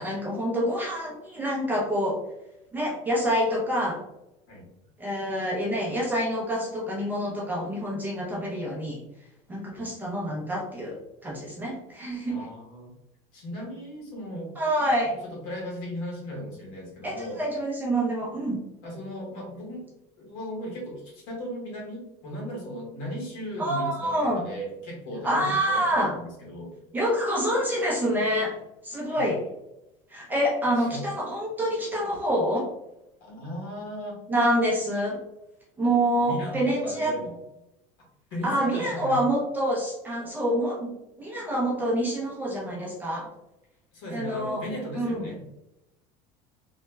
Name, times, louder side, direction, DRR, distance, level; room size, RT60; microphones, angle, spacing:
voice 1, 0.0-2.2 2.7-4.0 5.0-9.0 9.5-12.4 14.6-15.2 17.0-18.6 23.6-24.5 25.2-26.2 26.9-29.4 30.1-32.7 34.3-35.2 35.8-37.2 38.4-40.9 41.2-43.3 44.1-44.6 44.9-45.3, equal, 10° right, -4 dB, 0.6 m, -27 dB
voice 2, 12.3-12.9 13.3-14.5 15.2-17.4 18.8-19.8 20.2-26.7 29.1-29.3 30.8-31.1 33.2-34.2 36.2-37.4 38.3-39.2 43.9-45.4, equal, 75° left, -2 dB, 1.5 m, -36 dB
3.2 x 2.2 x 3.1 m, 0.89 s
cardioid pair, 175°, 16 cm